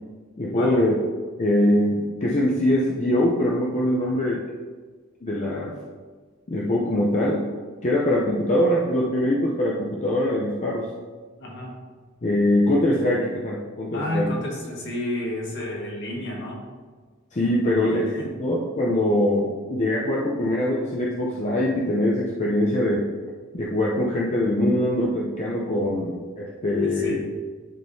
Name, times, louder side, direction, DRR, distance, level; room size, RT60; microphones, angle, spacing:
voice 1, 0.4-0.9 1.4-4.4 5.2-5.7 6.5-7.4 7.8-10.9 12.2-14.3 17.3-23.0 23.5-27.2, left 1 dB, 35° left, -4 dB, 0.6 m, -23 dB
voice 2, 11.4-11.7 13.9-16.7 17.6-18.3 25.8-26.0 26.8-27.3, left 1 dB, 60° left, -2 dB, 1.5 m, -31 dB
10.5 x 3.7 x 2.7 m, 1.4 s
head